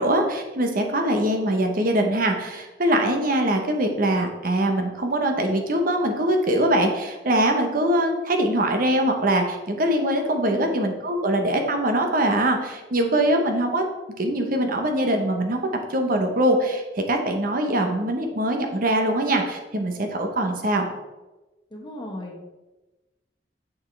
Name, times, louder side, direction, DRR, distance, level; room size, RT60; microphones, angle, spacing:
voice 1, 0.0-13.8 14.2-15.6 15.9-20.9, right 1 dB, 55° right, 4 dB, 0.9 m, -22 dB
voice 2, 21.7-22.4, left 1 dB, 25° left, -1 dB, 1.3 m, -36 dB
7.0 x 6.4 x 3.3 m, 1.1 s
head